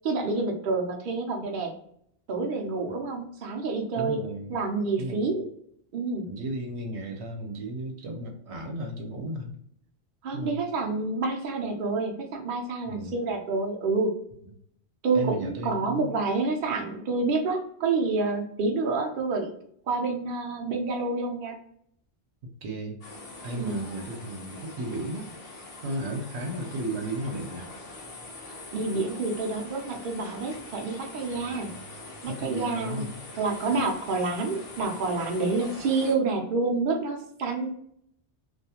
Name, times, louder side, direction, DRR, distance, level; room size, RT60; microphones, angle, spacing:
voice 1, 0.0-1.7 2.3-4.2 4.5-5.4 5.9-6.3 10.2-14.1 15.0-19.5 19.9-21.6 23.5-23.9 28.5-31.7 32.2-33.1 33.4-37.7, right 3 dB, 60° right, 1 dB, 0.7 m, -28 dB
voice 2, 4.0-4.6 5.0-5.4 6.3-9.5 10.3-10.6 12.8-13.2 15.1-16.1 22.6-23.0 23.4-25.3 25.8-27.7 32.3-33.1, right 1 dB, 85° right, 2 dB, 1.0 m, -34 dB
sound 1, 23.0-36.1, left 2 dB, 40° left, 0.7 m, -43 dB
2.4 x 2.3 x 2.8 m, 0.69 s
omnidirectional pair, 1.1 m